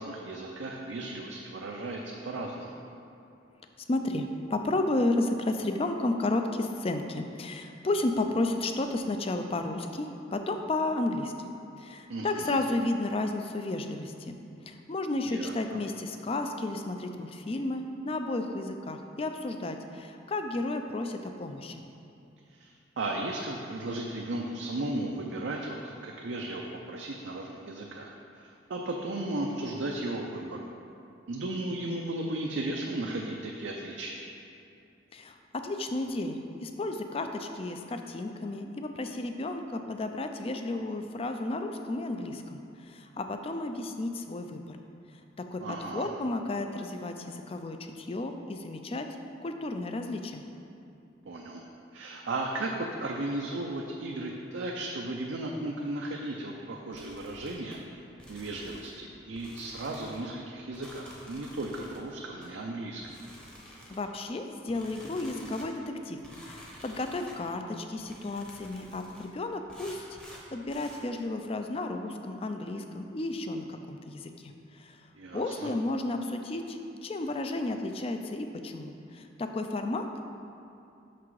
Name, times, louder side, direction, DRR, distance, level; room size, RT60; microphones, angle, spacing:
voice 1, 0.0-2.7 12.1-12.6 15.3-15.5 22.5-28.1 28.4-30.6 31.3-34.2 45.6-46.1 51.3-51.6 51.9-57.8 58.3-63.1 75.2-75.7, right 2 dB, 75° right, 0 dB, 0.5 m, -35 dB
voice 2, 3.9-11.3 11.8-14.4 14.7-21.8 35.1-44.8 45.4-49.1 49.4-50.4 63.9-75.0 75.3-80.3, left 2 dB, 30° left, 6 dB, 0.4 m, -33 dB
sound 1, 56.9-57.8 58.2-59.0 59.3-60.2 60.7-62.0 62.4-62.5 63.0-64.1 64.7-65.7 66.2-67.4 68.0-69.3 69.7-71.0, equal, 5° left, 0.8 m, -50 dB
5.9 x 5.8 x 4.7 m, 2.6 s
head